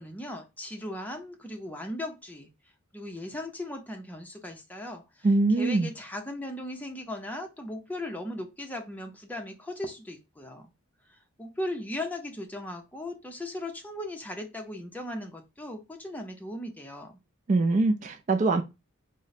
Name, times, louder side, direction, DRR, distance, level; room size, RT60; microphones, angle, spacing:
voice 1, 0.0-2.5 2.9-5.0 5.6-10.7 11.4-17.1, left 1 dB, 10° left, 0.6 m, -37 dB
voice 2, 5.2-5.9 17.5-18.6, right 3 dB, 35° right, 0.3 m, -23 dB
3.7 x 2.1 x 4.1 m
head